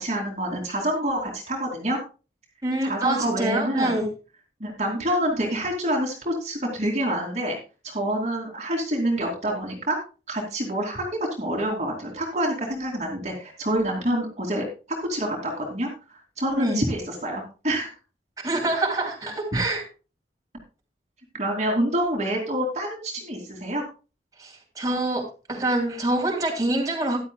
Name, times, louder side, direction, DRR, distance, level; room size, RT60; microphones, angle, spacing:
voice 1, 0.0-2.0 2.8-3.9 4.6-7.6 7.8-10.0 10.3-14.7 15.1-15.9 16.4-17.9 21.3-23.8, right 1 dB, 40° right, 0 dB, 2.7 m, -27 dB
voice 2, 2.6-4.1 16.6-16.8 18.4-19.8 24.4-25.2 25.5-27.2, right 2 dB, 20° right, 0 dB, 3.0 m, -25 dB
14.5 x 11.0 x 2.3 m, 0.32 s
head